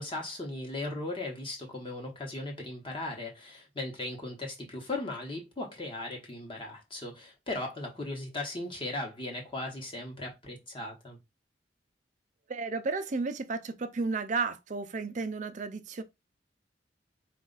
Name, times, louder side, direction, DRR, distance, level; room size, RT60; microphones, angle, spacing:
voice 1, 0.0-11.2, left 2 dB, 30° left, 1.0 m, -37 dB
voice 2, 12.5-16.0, right 4 dB, 40° right, 0.5 m, -33 dB
4.2 x 2.4 x 3.9 m
head